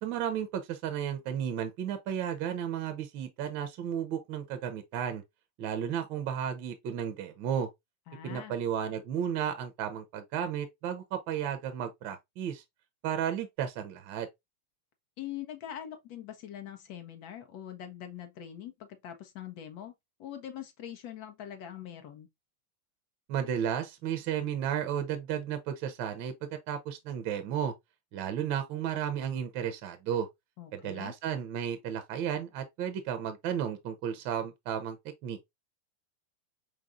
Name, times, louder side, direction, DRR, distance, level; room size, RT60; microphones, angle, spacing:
voice 1, 0.0-5.2 5.6-7.7 8.2-12.6 13.0-14.3 23.3-26.3 26.7-27.7 28.1-30.3 30.7-35.0 35.2-35.4, right 9 dB, 55° right, 0.9 m, -33 dB
voice 2, 8.1-8.6 15.2-19.9 20.2-22.3 30.6-31.1, left 10 dB, 55° left, 1.2 m, -43 dB
4.8 x 3.6 x 2.6 m
hypercardioid pair, 100°, 0 cm